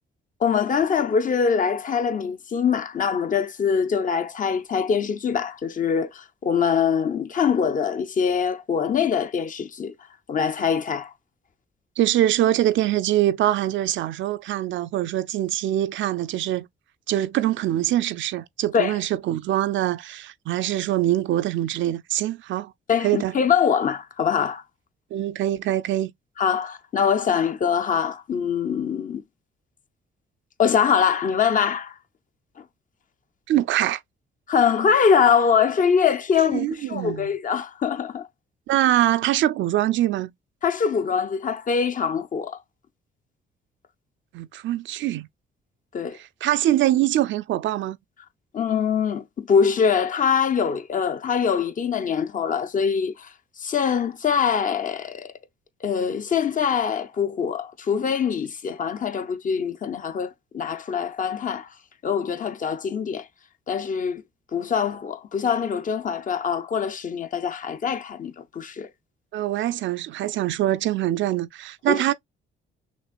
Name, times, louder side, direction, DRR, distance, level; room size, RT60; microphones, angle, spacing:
voice 1, 0.4-9.9 10.3-11.1 18.7-19.0 22.9-24.6 26.4-29.2 30.6-32.0 32.6-32.7 34.5-38.3 40.6-42.6 45.9-46.2 48.5-55.3 55.8-61.7 62.0-63.3 63.7-64.2 64.5-68.9 71.9-72.0, left 7 dB, 40° left, 0.6 m, -23 dB
voice 2, 12.0-16.7 17.1-22.7 23.0-23.3 25.1-26.1 33.5-34.0 36.5-37.3 38.7-40.3 44.3-45.3 46.4-48.0 69.3-72.1, right 13 dB, 70° right, 0.4 m, -23 dB
6.1 x 2.5 x 2.3 m
cardioid pair, 90°, 20 cm